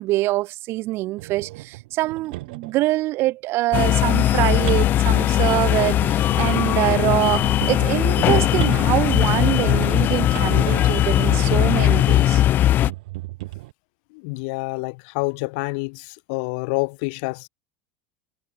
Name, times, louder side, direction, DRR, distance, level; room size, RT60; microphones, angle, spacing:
voice 1, 0.0-12.4, right 18 dB, 50° right, 1.6 m, -24 dB
sound 1, 1.2-2.8 3.9-12.4 12.9-13.7, right 20 dB, 75° right, 3.0 m, -35 dB
sound 2, 3.7-12.9, left 12 dB, 40° left, 0.5 m, -19 dB
voice 2, 14.1-17.5, left 31 dB, 65° left, 1.8 m, -28 dB
supercardioid pair, 115°, 5 cm